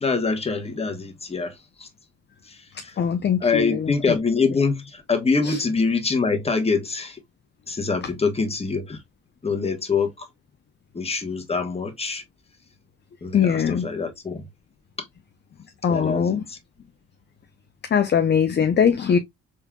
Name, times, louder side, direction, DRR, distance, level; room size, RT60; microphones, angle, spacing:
voice 1, 0.0-1.9 2.5-2.9 3.4-7.2 7.7-9.0 9.4-10.3 10.9-12.2 13.2-14.5 15.9-16.6, left 4 dB, 20° left, 1.1 m, -25 dB
voice 2, 3.0-3.9 5.4-5.6 13.3-13.9 15.8-16.4 17.9-19.2, left 7 dB, 35° left, 0.6 m, -21 dB
4.2 x 3.6 x 2.2 m
cardioid pair, 90°, 30 cm